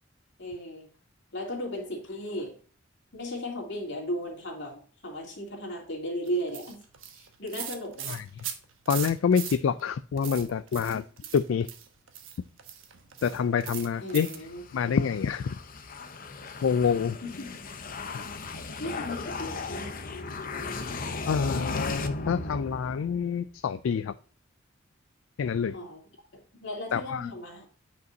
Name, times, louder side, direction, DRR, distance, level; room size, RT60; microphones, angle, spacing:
voice 1, 0.4-0.9 1.3-2.6 3.1-6.8 7.1-8.4 10.9-11.0 14.0-14.6 17.2-17.6 18.8-19.9 25.7-26.0 26.3-27.7, equal, 65° left, 2.8 m, -36 dB
sound 1, 6.3-9.9 10.2-14.5, right 9 dB, 85° right, 1.1 m, -40 dB
voice 2, 8.9-11.0 11.3-11.7 13.2-14.3 14.7-15.6 16.6-17.2 21.3-24.1 25.4-25.8 26.9-27.3, left 6 dB, 85° left, 0.4 m, -27 dB
sound 2, 14.0-23.4, left 3 dB, 45° left, 0.7 m, -36 dB
9.3 x 5.2 x 2.7 m
head